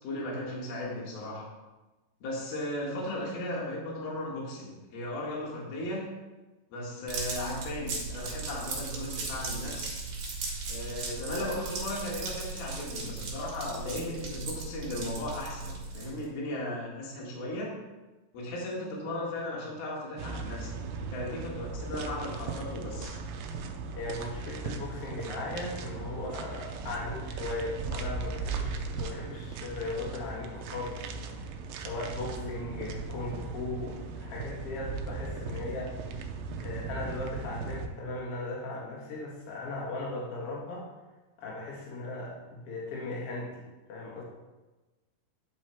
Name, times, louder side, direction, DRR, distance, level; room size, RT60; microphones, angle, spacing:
voice 1, 0.0-1.5 2.2-6.2 6.7-10.1 10.7-17.8 18.3-23.2 32.3-32.6, left 1 dB, 70° left, -4 dB, 3.5 m, -36 dB
sound 1, 7.1-16.2, right 3 dB, 55° right, 2.6 m, -37 dB
sound 2, 20.2-37.9, right 4 dB, 80° right, 2.2 m, -38 dB
voice 2, 23.9-31.0 31.3-31.5 31.8-35.9 36.6-40.8 41.4-44.2, left 2 dB, 45° left, -4 dB, 2.1 m, -38 dB
10.0 x 4.8 x 4.5 m, 1.1 s
omnidirectional pair, 4.7 m